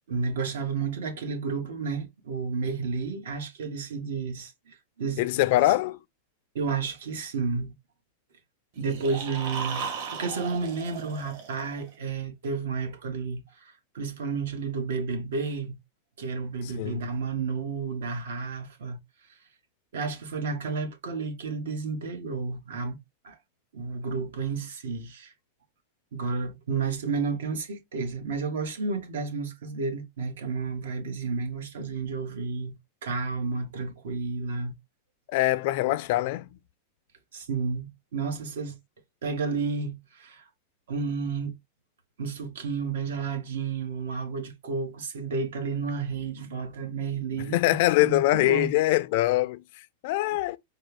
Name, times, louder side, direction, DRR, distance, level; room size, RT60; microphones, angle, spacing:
voice 1, 0.1-5.4 6.5-7.7 8.8-15.8 16.2-19.0 19.9-23.0 23.2-23.4 23.7-25.3 26.1-32.7 33.0-34.8 37.3-38.8 39.2-40.5 40.9-41.5 42.2-48.7, right 4 dB, 85° right, 1.4 m, -31 dB
voice 2, 5.2-6.0 16.8-17.0 35.3-36.5 47.5-49.6 50.0-50.6, left 17 dB, 55° left, 0.4 m, -23 dB
sound 1, 8.8-11.9, right 6 dB, 60° right, 1.6 m, -36 dB
4.2 x 2.3 x 3.5 m
supercardioid pair, 145°, 0 cm